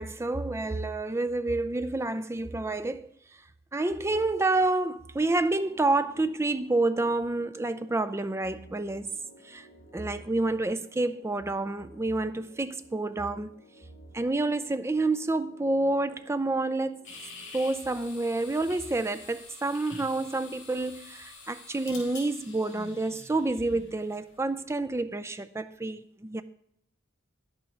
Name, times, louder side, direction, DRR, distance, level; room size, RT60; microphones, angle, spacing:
voice 1, 0.0-3.1 3.7-9.2 9.4-9.7 9.9-13.6 14.1-17.0 17.5-26.4, right 2 dB, 15° right, 0.4 m, -28 dB
sound 1, 5.6-19.9, right 1 dB, 40° left, 4.2 m, -57 dB
sound 2, 17.0-24.3, left 3 dB, 65° left, 4.7 m, -47 dB
10.5 x 9.1 x 3.7 m
head